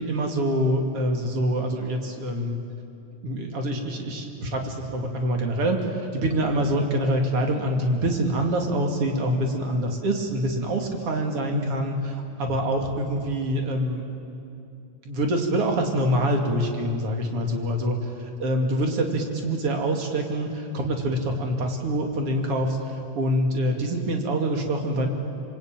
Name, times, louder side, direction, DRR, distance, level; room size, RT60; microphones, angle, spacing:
voice 1, 0.0-2.6 3.2-14.0 15.0-18.0 18.4-22.8 23.1-25.1, right 1 dB, 45° right, 2 dB, 3.2 m, -25 dB
26.5 x 24.0 x 9.0 m, 2.6 s
omnidirectional pair, 3.9 m